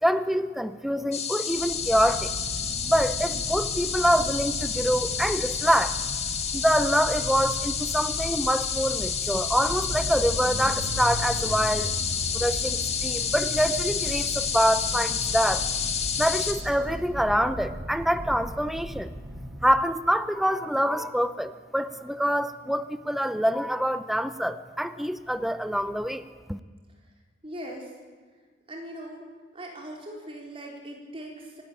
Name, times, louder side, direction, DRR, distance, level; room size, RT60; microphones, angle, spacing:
voice 1, 0.0-2.3 2.9-6.0 6.5-12.0 12.3-15.7 16.2-19.1 19.6-26.6, equal, ahead, 11 dB, 0.6 m, -25 dB
sound 1, 1.1-16.5, left 7 dB, 35° left, 2.0 m, -30 dB
sound 2, 1.5-19.9, equal, 60° right, 1.7 m, -37 dB
voice 2, 27.4-27.9 28.7-29.2 29.5-31.6, right 1 dB, 30° right, 0 dB, 4.2 m, -40 dB
24.5 x 13.0 x 9.2 m, 1.5 s
head